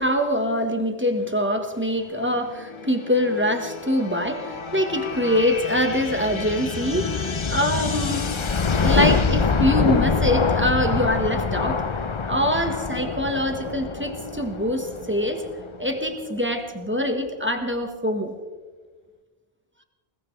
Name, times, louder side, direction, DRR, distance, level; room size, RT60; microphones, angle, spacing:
voice 1, 0.0-8.3 8.7-11.9 12.3-15.4 15.8-18.3, equal, 10° right, 5 dB, 1.4 m, -24 dB
sound 1, 2.4-15.9, left 5 dB, 35° left, 0.6 m, -26 dB
21.0 x 19.0 x 3.3 m, 1.4 s
omnidirectional pair, 1.1 m